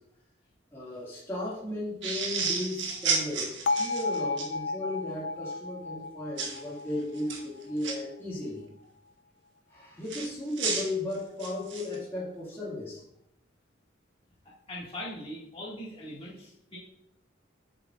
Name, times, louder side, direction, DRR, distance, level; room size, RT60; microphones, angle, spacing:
voice 1, 0.7-8.7 9.7-13.0, left 1 dB, 15° left, -8 dB, 2.1 m, -35 dB
sound 1, 2.0-4.5 6.4-6.6 7.2-7.9 10.1-12.0, right 5 dB, 70° right, 1.4 m, -31 dB
Bell, 3.7-7.7, left 3 dB, 70° left, 0.4 m, -33 dB
voice 2, 14.7-16.8, left 1 dB, 30° left, -6 dB, 2.1 m, -40 dB
7.9 x 6.6 x 2.5 m, 0.77 s
head